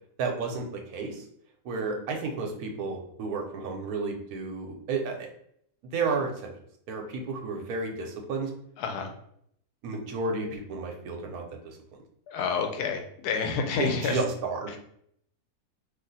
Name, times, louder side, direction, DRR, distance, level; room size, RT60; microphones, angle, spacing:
voice 1, 0.2-1.2 1.6-5.3 5.9-6.3 6.9-8.5 9.8-11.8 13.8-14.7, right 4 dB, 75° right, 2 dB, 1.1 m, -32 dB
voice 2, 8.8-9.1 12.3-14.2 14.7-14.8, left 5 dB, 80° left, 5 dB, 1.1 m, -29 dB
2.7 x 2.5 x 3.9 m, 0.68 s
omnidirectional pair, 1.7 m